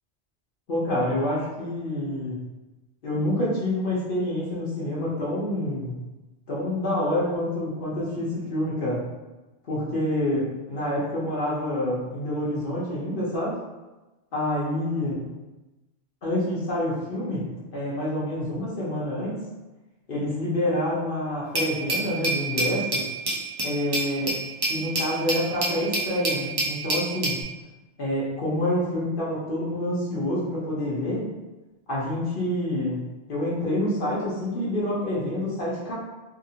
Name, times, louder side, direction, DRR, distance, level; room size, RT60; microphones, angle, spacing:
voice 1, 0.7-2.4 3.0-6.0 6.5-9.0 9.6-13.5 14.3-15.2 16.2-19.4 20.1-23.0 23.6-24.3 24.7-27.4 28.0-31.2 31.9-35.9, left 1 dB, 55° left, -6 dB, 0.9 m, -27 dB
Glass, 21.5-27.4, right 2 dB, 30° right, 0.4 m, -28 dB
2.8 x 2.5 x 2.7 m, 1.1 s
omnidirectional pair, 1.2 m